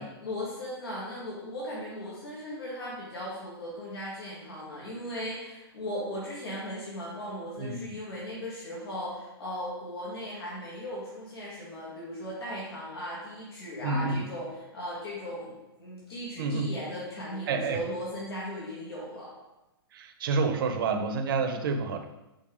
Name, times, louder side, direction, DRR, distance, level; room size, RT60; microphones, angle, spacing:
voice 1, 0.0-19.3, equal, 70° left, -6 dB, 2.5 m, -37 dB
voice 2, 7.6-7.9 13.8-14.2 16.4-16.7 17.5-17.8 20.0-22.1, right 4 dB, 60° right, 6 dB, 0.9 m, -28 dB
7.3 x 4.5 x 3.7 m, 0.97 s
hypercardioid pair, 125°, 13 cm